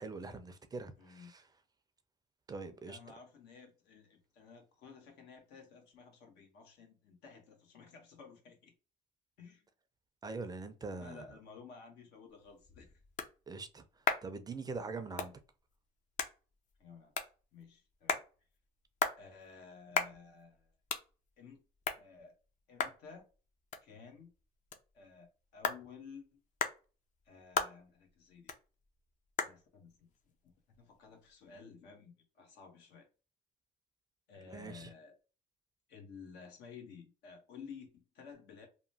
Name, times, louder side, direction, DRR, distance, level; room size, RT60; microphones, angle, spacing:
voice 1, 0.0-1.4 2.5-3.0 10.2-11.3 13.5-13.8 14.2-15.3 34.5-34.9, right 4 dB, 25° right, 0.4 m, -43 dB
voice 2, 1.0-1.3 2.8-8.7 9.4-9.7 11.0-13.0 15.2-15.3 16.8-17.1 17.5-18.2 19.2-20.7 21.4-21.6 21.9-22.3 22.7-23.3 23.8-24.3 24.9-26.4 27.2-28.5 29.4-30.1 30.4-33.1 34.3-35.1 35.9-38.7, left 5 dB, 80° left, 1.0 m, -54 dB
sound 1, 12.3-31.6, left 5 dB, 50° left, 0.5 m, -41 dB
2.9 x 2.1 x 2.6 m
cardioid pair, 110°, 17 cm